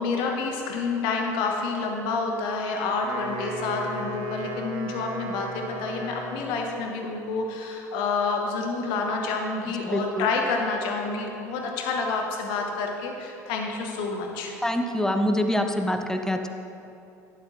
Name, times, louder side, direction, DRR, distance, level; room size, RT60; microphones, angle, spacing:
voice 1, 0.0-14.5, left 4 dB, 60° left, 1 dB, 1.3 m, -28 dB
Wind instrument woodwind instrument, 2.9-6.8, right 2 dB, 50° right, 1.5 m, -36 dB
voice 2, 9.8-10.3 14.6-16.5, left 1 dB, 5° left, 6 dB, 0.7 m, -25 dB
12.0 x 9.8 x 2.6 m, 2.7 s
figure-of-eight pair, 65°, 9 cm